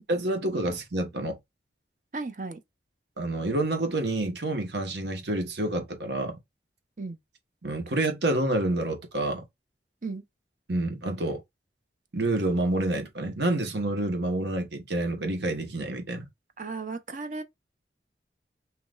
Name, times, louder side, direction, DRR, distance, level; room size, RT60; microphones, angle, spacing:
voice 1, 0.1-1.4 3.2-6.4 7.6-9.4 10.7-11.4 12.1-16.3, right 2 dB, 75° right, 1.4 m, -28 dB
voice 2, 2.1-2.6 7.0-7.2 10.0-10.2 16.6-17.4, right 3 dB, 45° right, 0.8 m, -35 dB
5.7 x 3.1 x 2.5 m
head